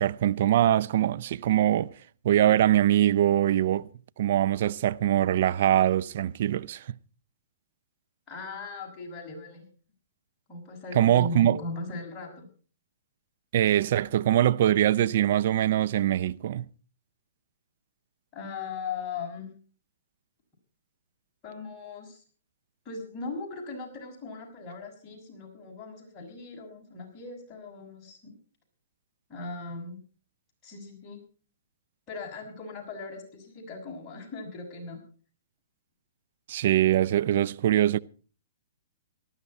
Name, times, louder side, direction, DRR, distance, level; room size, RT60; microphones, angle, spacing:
voice 1, 0.0-1.9 2.2-3.9 4.2-6.8 10.9-11.6 13.5-16.6 36.5-38.0, right 12 dB, 55° right, 0.6 m, -23 dB
voice 2, 8.3-9.6 10.5-12.5 18.3-19.5 21.4-22.2 22.8-28.3 29.3-30.0 30.6-31.2 32.1-35.0, left 3 dB, 25° left, 6.5 m, -39 dB
18.5 x 14.0 x 4.3 m
hypercardioid pair, 140°, 0 cm